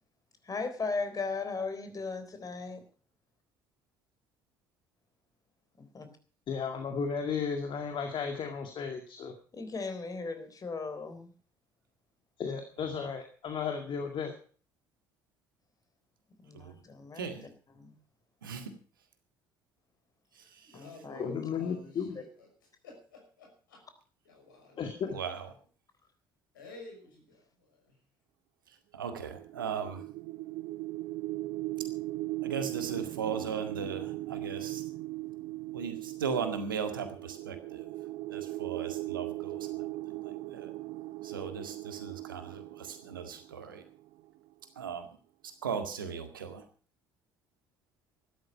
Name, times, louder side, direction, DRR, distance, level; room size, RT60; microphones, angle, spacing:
voice 1, 0.4-2.8 5.8-6.1 9.5-11.3 16.4-17.3 17.7-18.0 20.7-21.4, left 4 dB, 35° left, 9 dB, 3.7 m, -37 dB
voice 2, 6.5-9.3 12.4-14.3 21.2-22.2 24.8-25.2, left 6 dB, 50° left, 5 dB, 2.1 m, -34 dB
voice 3, 17.2-17.5 18.4-18.7 20.4-20.7 25.1-25.5 28.9-30.0 32.4-34.8 35.7-37.9 38.3-39.9 40.3-40.7 41.2-43.8 44.8-45.1 45.6-46.6, right 6 dB, 80° right, 7 dB, 1.8 m, -37 dB
voice 4, 20.4-22.5 22.8-23.8 24.2-25.2 26.5-28.0, left 2 dB, 80° left, 2 dB, 5.7 m, -51 dB
sound 1, 29.1-44.2, right 18 dB, 60° right, 0.7 m, -39 dB
14.5 x 12.5 x 5.4 m, 0.41 s
figure-of-eight pair, 50°, 11 cm